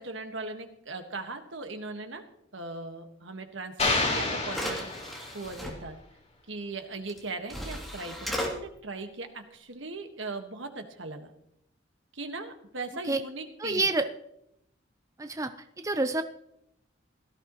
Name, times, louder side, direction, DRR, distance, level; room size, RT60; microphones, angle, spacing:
voice 1, 0.0-2.2 2.5-4.9 5.3-6.0 6.5-11.3 12.1-13.9, right 3 dB, 75° right, 6 dB, 1.6 m, -39 dB
sound 1, 3.8-5.5, left 3 dB, 35° left, 2.9 m, -29 dB
sound 2, 3.9-4.0 4.4-5.7 7.1-7.2 7.5-8.5, equal, ahead, 2.7 m, -35 dB
voice 2, 13.6-14.1 15.2-15.5 15.8-16.2, right 3 dB, 15° right, 9 dB, 0.5 m, -27 dB
17.5 x 13.5 x 3.1 m, 0.77 s
head